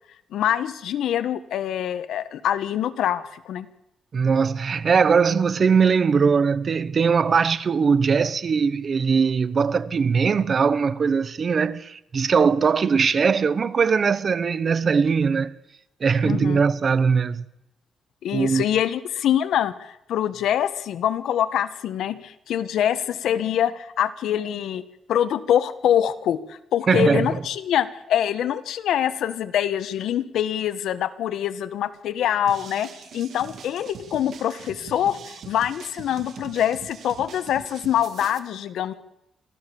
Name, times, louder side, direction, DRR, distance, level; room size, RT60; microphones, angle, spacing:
voice 1, 0.3-3.7 16.3-16.6 18.2-24.8 25.1-38.9, left 10 dB, 75° left, 1.3 m, -24 dB
voice 2, 4.1-15.5 16.0-17.4 18.3-18.6 26.9-27.4, right 5 dB, 35° right, 0.8 m, -20 dB
sound 1, 32.5-38.4, right 7 dB, 55° right, 1.9 m, -42 dB
25.5 x 15.5 x 7.1 m
cardioid pair, 165°, 0 cm